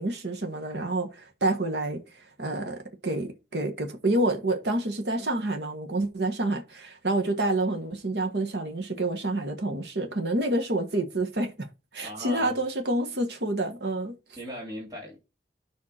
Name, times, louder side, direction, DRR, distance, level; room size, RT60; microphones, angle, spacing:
voice 1, 0.0-2.0 2.4-11.7 11.9-14.1, right 2 dB, 70° right, 1.4 m, -28 dB
voice 2, 12.0-12.5 14.4-15.2, equal, 20° right, 3.2 m, -38 dB
8.9 x 5.7 x 4.4 m
head